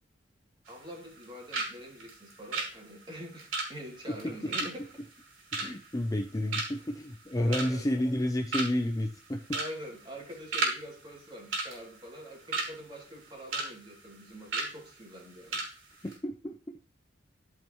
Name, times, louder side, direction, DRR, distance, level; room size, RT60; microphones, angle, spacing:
voice 1, 0.7-4.8 7.4-7.9 9.5-15.6, equal, 25° right, 0 dB, 2.7 m, -45 dB
sound 1, 0.7-1.3 1.5-1.7 2.0-6.2 6.5-6.9 7.3-7.9 8.2-8.3 8.5-8.9 9.5-9.7 10.0-10.8 11.0-11.2 11.5-12.7 13.1-13.7 14.0-14.1 14.5-14.7 15.1-15.2 15.5-15.7 16.0-16.1, right 3 dB, 85° right, 3.5 m, -33 dB
voice 2, 5.5-9.4 16.0-16.6, left 1 dB, 15° left, 4 dB, 0.5 m, -30 dB
13.5 x 5.4 x 3.1 m, 0.40 s
head